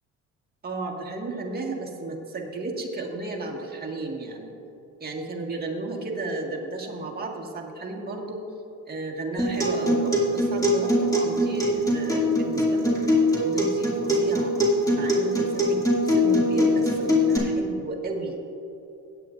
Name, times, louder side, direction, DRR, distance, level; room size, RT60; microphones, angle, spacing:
voice 1, 0.6-4.5 5.0-8.4 8.9-13.0 13.3-14.5 14.9-18.3, right 2 dB, 30° right, 0 dB, 1.7 m, -33 dB
Acoustic guitar, 9.4-17.4, left 1 dB, 10° left, 2.4 m, -23 dB
17.0 x 9.3 x 2.6 m, 2.9 s
cardioid pair, 115°, 32 cm